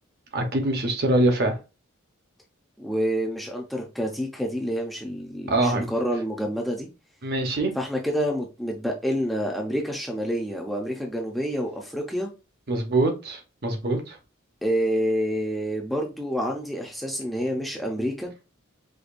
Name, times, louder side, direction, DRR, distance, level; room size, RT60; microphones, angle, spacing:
voice 1, 0.3-1.6 5.5-5.9 7.2-7.7 12.7-14.2, right 2 dB, 50° right, 0.8 m, -24 dB
voice 2, 2.8-6.9 7.8-12.3 14.6-18.3, equal, ahead, 0.5 m, -28 dB
5.0 x 2.2 x 2.5 m
head